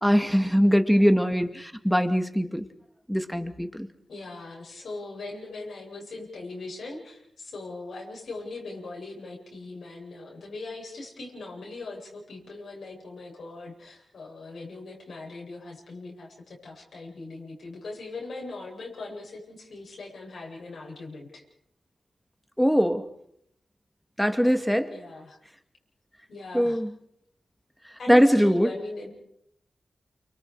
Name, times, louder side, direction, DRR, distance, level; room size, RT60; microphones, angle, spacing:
voice 1, 0.0-2.6 3.1-3.9 22.6-23.0 24.2-24.9 26.5-26.9 28.1-28.7, equal, ahead, 7 dB, 2.4 m, -21 dB
voice 2, 1.2-1.5 4.1-21.4 24.9-25.4 26.3-26.8 28.0-29.1, left 3 dB, 75° left, -2 dB, 7.9 m, -40 dB
29.5 x 25.0 x 5.0 m, 0.71 s
cardioid pair, 60°, 0 cm